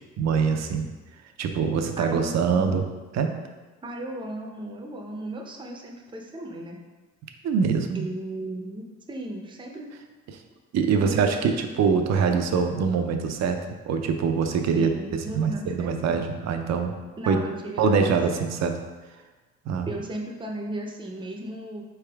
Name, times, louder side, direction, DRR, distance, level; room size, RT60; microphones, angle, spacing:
voice 1, 0.2-0.9 1.4-2.8 3.1-3.4 7.4-8.1 10.7-16.9 17.3-17.4 17.8-18.8 19.7-19.9, right 5 dB, 60° right, 6 dB, 0.6 m, -24 dB
voice 2, 2.0-2.7 3.8-6.8 7.9-9.9 11.0-11.4 14.7-15.9 17.2-18.7 19.9-21.8, right 1 dB, 15° right, 1 dB, 0.6 m, -36 dB
4.3 x 3.5 x 3.4 m, 1.3 s
cardioid pair, 90°, 30 cm